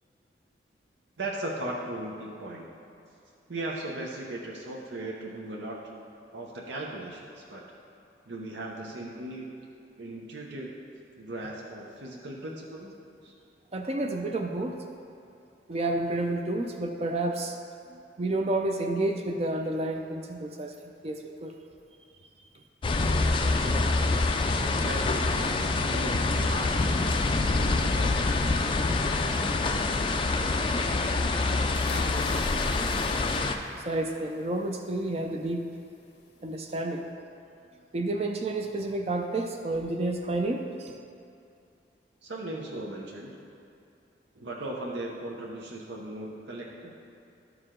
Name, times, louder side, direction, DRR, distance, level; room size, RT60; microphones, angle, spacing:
voice 1, 1.2-2.6 3.5-5.8 6.3-7.6 8.3-9.5 10.0-10.7 11.2-12.9 13.2-13.3 23.5-23.9 24.6-26.8 27.5-31.4 42.2-43.3 44.3-46.9, right 1 dB, 80° right, -2 dB, 0.8 m, -38 dB
voice 2, 13.7-14.8 15.7-17.6 17.9-20.7 21.0-21.5 33.8-35.6 36.4-37.0 37.9-40.9, right 2 dB, 35° right, 3 dB, 0.4 m, -30 dB
sound 1, 22.8-33.6, left 3 dB, 30° left, 0.3 m, -26 dB
sound 2, 31.7-33.8 34.2-34.7 36.1-36.2 36.5-36.6, left 3 dB, 70° left, 0.7 m, -40 dB
12.0 x 4.8 x 3.7 m, 2.6 s
head